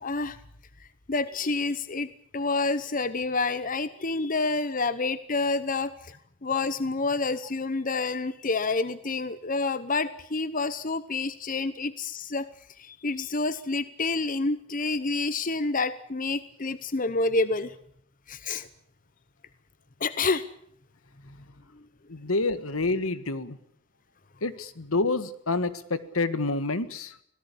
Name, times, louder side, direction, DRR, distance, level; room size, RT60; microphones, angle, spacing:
voice 1, 0.0-0.4 1.1-2.1 2.3-6.1 6.4-12.5 12.8-17.7 18.3-18.7 20.0-20.4, left 3 dB, 40° left, 14 dB, 0.9 m, -28 dB
voice 2, 22.1-23.6 24.4-27.2, left 3 dB, 80° left, 13 dB, 1.7 m, -28 dB
24.5 x 17.5 x 8.5 m, 0.68 s
head